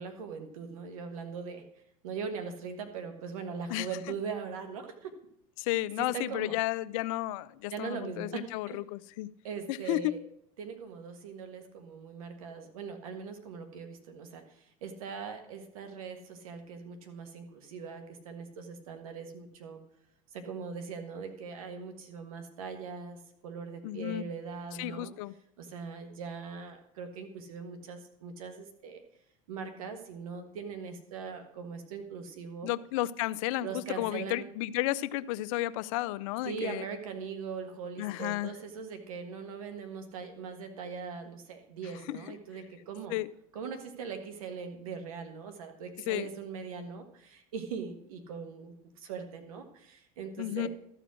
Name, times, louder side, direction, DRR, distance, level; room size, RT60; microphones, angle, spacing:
voice 1, 0.0-1.6 2.0-5.1 6.0-6.6 7.7-8.4 8.7-8.8 9.4-10.2 10.6-19.8 20.3-25.1 25.6-29.0 29.5-32.7 33.6-34.5 36.4-43.2 43.5-50.7, right 5 dB, 85° right, 1.5 m, -41 dB
voice 2, 5.6-9.3 9.7-10.2 23.8-24.3 24.8-25.3 32.6-36.8 38.0-38.5 42.1-42.4 43.1-43.3 46.1-46.3 50.4-50.7, left 16 dB, 70° left, 0.5 m, -32 dB
13.0 x 4.9 x 6.2 m
supercardioid pair, 100°, 18 cm